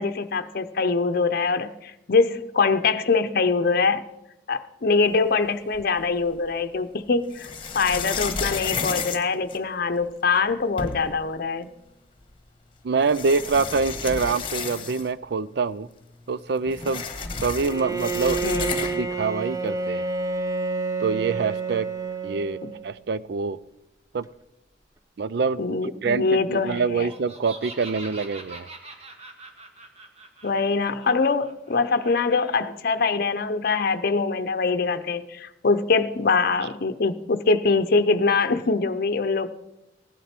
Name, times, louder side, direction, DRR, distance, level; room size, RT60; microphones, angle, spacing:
voice 1, 0.0-4.0 4.5-7.5 7.7-11.7 18.4-18.8 22.6-22.7 25.6-27.1 30.4-39.5, left 4 dB, 55° left, 8 dB, 0.7 m, -23 dB
sound 1, 5.7-6.5 7.3-10.0 10.5-10.6 10.8-11.3 12.3-12.4 13.0-15.2 15.5-15.6 15.9-19.2, left 5 dB, 30° left, 1.2 m, -32 dB
voice 2, 12.8-15.9 16.3-17.0 17.4-18.4 18.9-20.1 21.0-21.9 22.2-22.6 22.8-23.6 24.1-24.3 25.2-28.7, right 4 dB, 65° right, 17 dB, 0.5 m, -25 dB
Bowed string instrument, 17.6-23.0, right 4 dB, 20° right, 0.6 m, -29 dB
Laughter, 26.9-32.5, right 3 dB, 35° right, 1.5 m, -44 dB
16.0 x 11.5 x 4.4 m, 0.92 s
head